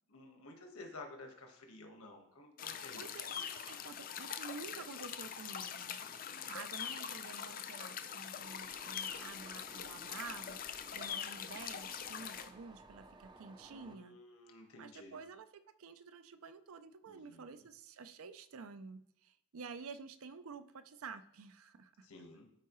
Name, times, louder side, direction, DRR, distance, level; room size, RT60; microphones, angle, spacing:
voice 1, 0.1-3.1 6.0-6.6 13.7-15.2 17.1-17.6 22.0-22.5, left 2 dB, 85° left, 3 dB, 1.4 m, -53 dB
sound 1, 2.6-12.5, left 8 dB, 40° left, 0.4 m, -43 dB
voice 2, 2.9-6.0 6.5-14.2 14.8-22.1, right 5 dB, 75° right, 12 dB, 0.5 m, -50 dB
sound 2, 8.4-14.0, right 2 dB, 20° right, 0.4 m, -58 dB
13.0 x 4.6 x 3.1 m, 0.77 s
head